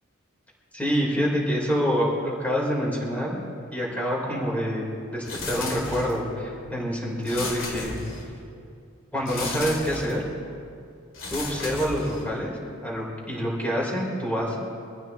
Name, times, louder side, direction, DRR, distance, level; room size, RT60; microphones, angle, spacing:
voice 1, 0.7-3.4 3.7-4.9 5.1-8.0 9.1-10.2 11.3-12.5 12.8-14.6, equal, 10° left, -4 dB, 3.8 m, -26 dB
sound 1, 5.2-6.3 7.2-8.4 9.2-10.3 11.1-12.4, left 3 dB, 85° left, 2.5 m, -35 dB
25.0 x 15.0 x 3.0 m, 2.4 s
head